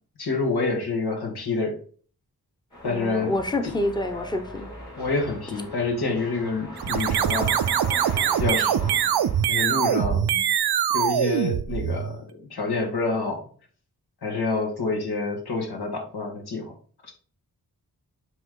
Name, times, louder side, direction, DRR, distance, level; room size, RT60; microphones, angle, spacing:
voice 1, 0.2-1.8 2.8-3.3 3.6-3.7 5.0-7.6 8.4-8.9 9.5-10.3 10.9-13.4 14.2-16.7 17.0-17.1, left 3 dB, 90° left, 1.6 m, -27 dB
sound 1, 2.7-9.5, left 1 dB, 50° left, 2.9 m, -39 dB
voice 2, 2.8-4.7 10.1-10.4, left 1 dB, 10° left, 0.8 m, -28 dB
sound 2, 6.8-12.2, right 10 dB, 85° right, 0.5 m, -23 dB
7.8 x 3.1 x 3.8 m
wide cardioid pair, 70°, 38 cm